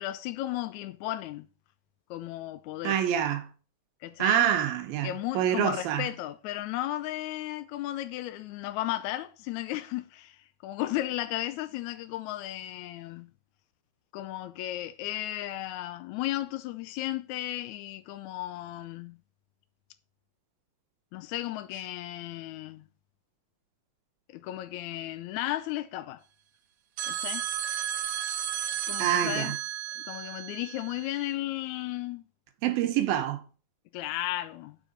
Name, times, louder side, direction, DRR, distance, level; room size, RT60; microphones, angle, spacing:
voice 1, 0.0-1.5 2.1-3.0 4.0-4.5 5.0-13.3 14.1-19.2 21.1-22.9 24.3-26.2 27.1-27.4 28.9-29.6 29.9-32.3 33.9-34.8, left 15 dB, 85° left, 1.6 m, -34 dB
voice 2, 2.8-3.5 4.2-6.1 29.0-29.6 32.6-33.4, right 10 dB, 90° right, 3.0 m, -26 dB
sound 1, 27.0-31.3, right 10 dB, 70° right, 2.4 m, -33 dB
9.7 x 5.3 x 5.1 m
omnidirectional pair, 4.1 m